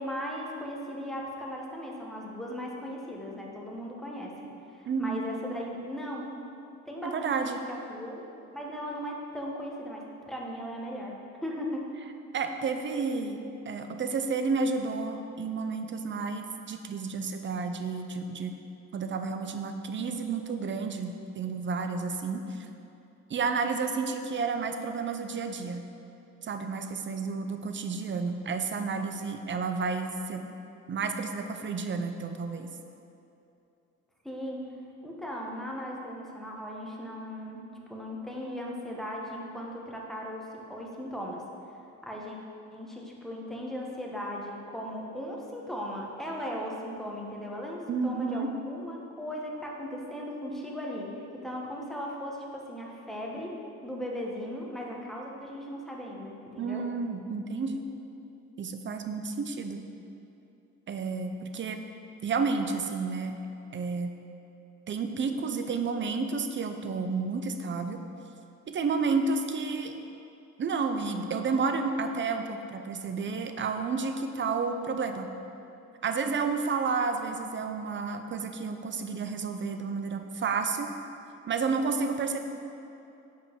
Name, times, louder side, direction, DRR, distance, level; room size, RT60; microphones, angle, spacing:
voice 1, 0.0-4.4 4.7-6.5 6.9-8.2 8.5-11.1 11.4-11.9 34.2-34.6 35.0-37.6 37.9-41.4 42.0-42.4 42.7-53.6 53.8-56.9, equal, ahead, -2 dB, 1.2 m, -37 dB
voice 2, 4.9-5.2 7.0-7.6 12.3-13.4 13.7-18.6 18.9-22.7 23.3-25.8 26.4-30.4 30.9-32.7 47.9-48.5 56.6-57.8 58.6-59.8 60.9-61.8 62.2-63.4 63.7-64.2 64.9-68.0 68.7-69.9 70.6-75.3 76.0-80.9 81.5-82.4, right 4 dB, 40° right, 6 dB, 0.6 m, -31 dB
5.6 x 5.1 x 5.9 m, 2.8 s
cardioid pair, 90°, 30 cm